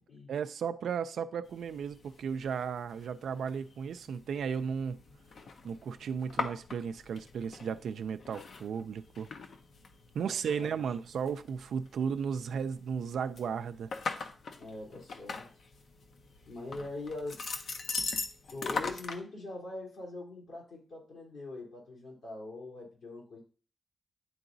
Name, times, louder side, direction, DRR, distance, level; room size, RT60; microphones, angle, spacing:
voice 1, 0.3-5.0 5.6-9.3 10.1-13.9, right 7 dB, 85° right, 0.3 m, -35 dB
sound 1, 1.4-19.2, left 4 dB, 65° left, 0.7 m, -42 dB
voice 2, 10.2-10.7 14.6-15.5 16.4-17.4 18.5-23.4, left 2 dB, 80° left, 2.9 m, -42 dB
9.9 x 3.9 x 2.6 m
wide cardioid pair, 110°, 0 cm